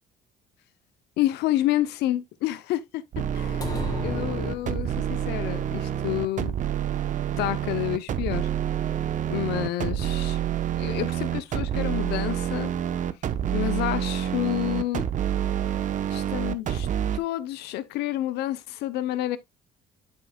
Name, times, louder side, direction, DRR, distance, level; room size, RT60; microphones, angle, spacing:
voice 1, 1.2-3.0 3.3-6.6 7.4-8.5 9.3-10.4 10.8-12.7 13.5-15.1 16.1-16.9 17.1-19.4, left 14 dB, 80° left, 0.6 m, -29 dB
sound 1, 3.1-17.2, right 9 dB, 50° right, 0.8 m, -28 dB
sound 2, 3.6-5.2, left 3 dB, 20° left, 1.5 m, -34 dB
8.3 x 6.5 x 2.2 m
cardioid pair, 110°, 17 cm